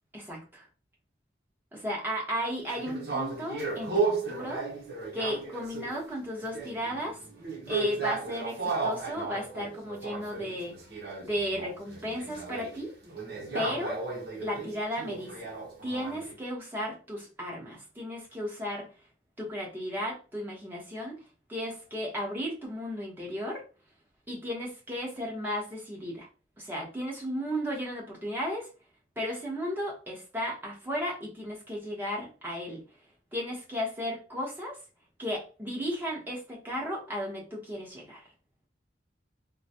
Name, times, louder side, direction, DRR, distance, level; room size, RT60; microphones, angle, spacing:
voice 1, 0.1-0.6 1.7-4.6 5.1-7.2 7.7-10.8 11.2-12.9 13.5-14.0 14.4-15.5 15.8-18.9 19.4-21.1 21.5-23.6 24.3-26.3 26.6-28.7 29.2-32.8 33.3-34.8 35.2-38.2, equal, 10° right, -3 dB, 1.0 m, -34 dB
sound 1, 2.7-6.1 6.3-16.4, right 4 dB, 65° right, 0.9 m, -35 dB
3.8 x 2.2 x 2.8 m, 0.34 s
head